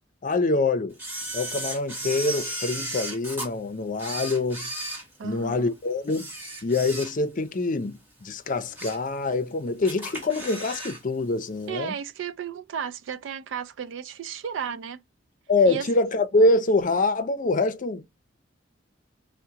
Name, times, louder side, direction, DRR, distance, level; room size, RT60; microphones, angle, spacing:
voice 1, 0.2-0.9 1.3-4.7 5.2-6.3 6.6-12.0 15.5-18.1, left 2 dB, 45° left, 0.5 m, -25 dB
Camera, 1.0-3.5 3.9-5.6 6.0-7.4 7.8-8.0 8.5-9.1 9.4-9.5 9.8-11.0 11.3-11.4, right 1 dB, 10° right, 1.7 m, -35 dB
voice 2, 5.2-5.7 11.7-15.0 15.7-15.9, right 8 dB, 85° right, 0.4 m, -34 dB
4.6 x 2.2 x 2.8 m
head